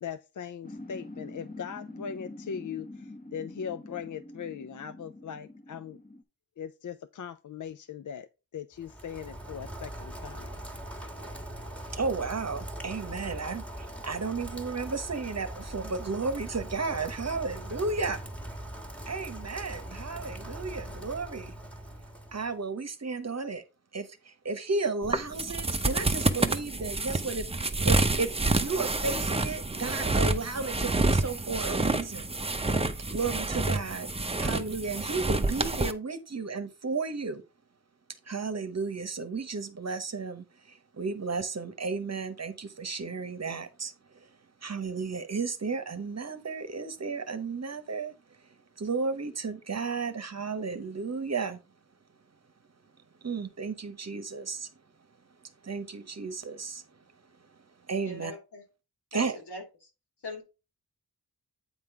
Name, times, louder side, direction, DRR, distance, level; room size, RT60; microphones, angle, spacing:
voice 1, 0.0-6.0 6.6-8.3 8.5-10.6, left 7 dB, 50° left, 0.4 m, -39 dB
sound 1, 0.6-6.2, left 2 dB, 20° left, 0.9 m, -45 dB
Rain, 8.8-22.6, right 1 dB, 5° left, 1.4 m, -41 dB
voice 2, 11.9-18.2 19.1-21.5 22.3-23.6 23.9-32.3 33.1-37.4 38.3-44.4 44.6-48.1 48.8-51.6 53.2-54.7 55.4-57.0 57.9-58.3 59.1-59.4, right 4 dB, 40° right, 0.9 m, -33 dB
sound 2, 25.0-35.9, right 2 dB, 15° right, 0.6 m, -28 dB
voice 3, 58.0-58.6 59.1-59.6 60.2-60.4, left 2 dB, 85° left, 2.7 m, -40 dB
8.7 x 3.8 x 4.5 m
wide cardioid pair, 105°, 39 cm